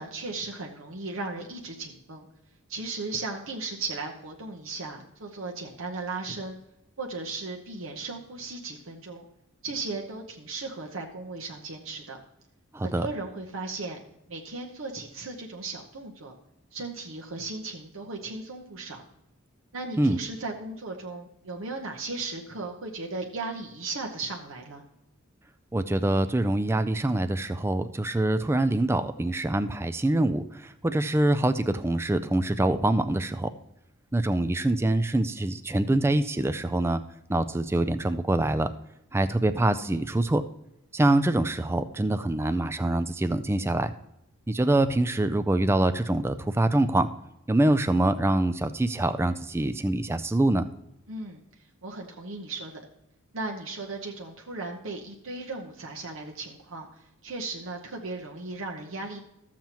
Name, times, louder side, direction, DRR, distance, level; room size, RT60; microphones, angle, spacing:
voice 1, 0.0-2.3 2.7-6.6 7.0-9.2 9.6-12.2 12.8-14.0 14.3-16.3 16.7-19.0 19.7-24.8 51.1-51.4 51.8-52.8 53.3-56.9 57.2-59.2, right 3 dB, 70° right, 0 dB, 0.9 m, -36 dB
voice 2, 12.7-13.1 20.0-20.2 25.7-33.5 34.1-37.0 37.3-38.7 39.1-40.4 40.9-43.9 44.5-47.1 47.5-50.7, right 1 dB, 10° right, 11 dB, 0.3 m, -25 dB
13.5 x 7.3 x 2.9 m, 0.85 s
head